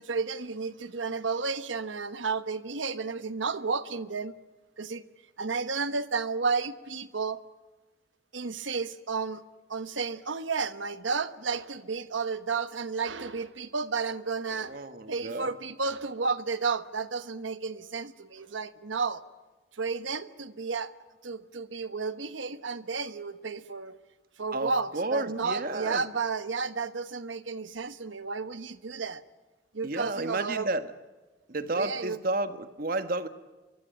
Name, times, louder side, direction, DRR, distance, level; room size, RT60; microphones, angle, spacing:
voice 1, 0.0-4.3 4.8-5.0 5.4-7.4 8.3-9.4 9.7-14.8 15.1-19.2 19.7-20.9 21.2-24.0 24.4-29.2 29.7-30.7 31.7-32.2, right 4 dB, 85° right, 12 dB, 1.2 m, -32 dB
voice 2, 14.7-15.5 24.5-26.0 29.8-30.9 31.5-33.3, right 2 dB, 50° right, 9 dB, 1.4 m, -31 dB
24.0 x 22.5 x 9.2 m, 1.2 s
head